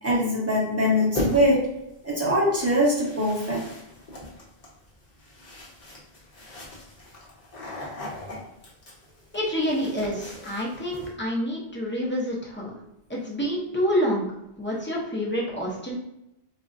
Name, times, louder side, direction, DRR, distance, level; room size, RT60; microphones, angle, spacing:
voice 1, 0.0-1.7 2.0-3.6, equal, 15° right, -6 dB, 0.9 m, -22 dB
sound 1, 1.1-1.7 2.6-11.1, left 1 dB, 45° left, 0.9 m, -37 dB
voice 2, 9.3-12.8 13.1-14.2 14.6-16.0, equal, 15° left, -4 dB, 0.5 m, -27 dB
3.7 x 2.1 x 2.5 m, 0.88 s
omnidirectional pair, 1.1 m